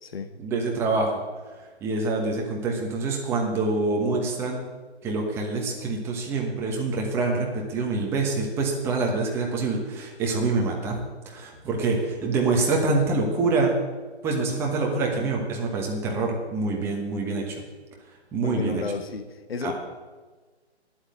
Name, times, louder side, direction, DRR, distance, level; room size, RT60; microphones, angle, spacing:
voice 1, 0.4-1.2 1.8-4.7 5.0-11.0 11.2-13.8 14.2-17.6 18.3-18.8 19.6-19.7, right 3 dB, 5° right, 0 dB, 1.2 m, -26 dB
voice 2, 18.4-19.7, left 4 dB, 60° left, 8 dB, 1.7 m, -32 dB
11.0 x 8.1 x 9.3 m, 1.3 s
figure-of-eight pair, 150°, 34 cm